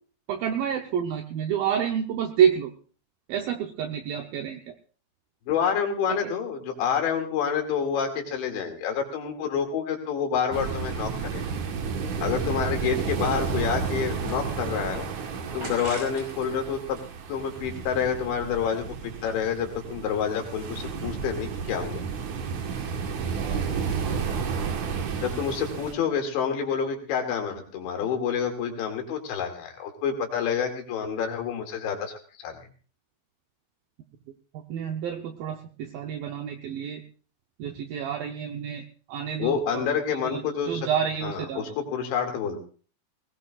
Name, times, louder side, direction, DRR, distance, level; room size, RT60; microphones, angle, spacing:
voice 1, 0.3-2.7 3.3-4.8 6.1-6.2 23.0-23.1 23.4-24.7 34.5-37.0 37.6-38.8 39.1-41.7, right 8 dB, 80° right, 5 dB, 2.1 m, -29 dB
voice 2, 5.5-11.4 12.2-15.1 15.5-17.0 17.3-22.0 25.2-32.6 39.4-40.9 41.2-42.7, left 7 dB, 75° left, 3 dB, 4.6 m, -28 dB
sound 1, 10.5-25.9, right 6 dB, 60° right, 2.0 m, -32 dB
sound 2, 14.1-14.9 15.6-16.5 16.8-18.0, right 1 dB, 35° right, 6.2 m, -42 dB
20.5 x 19.0 x 2.5 m, 0.40 s
omnidirectional pair, 5.3 m